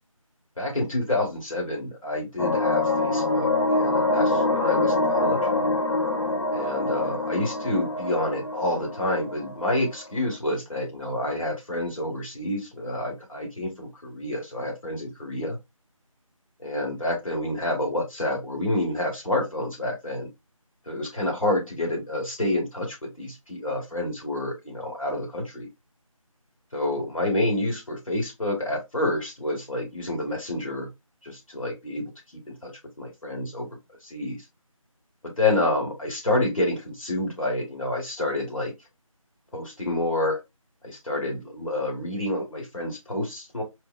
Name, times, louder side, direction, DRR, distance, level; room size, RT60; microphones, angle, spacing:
voice 1, 0.6-5.5 6.5-15.6 16.6-20.3 20.9-25.7 26.7-30.9 31.2-32.7 33.0-33.7 34.0-34.4 35.4-38.7 39.5-40.4 40.8-43.6, left 1 dB, 70° left, 2.0 m, -28 dB
sound 1, 2.4-10.0, left 2 dB, 55° left, 0.8 m, -25 dB
4.4 x 2.1 x 2.4 m
figure-of-eight pair, 175°, 18 cm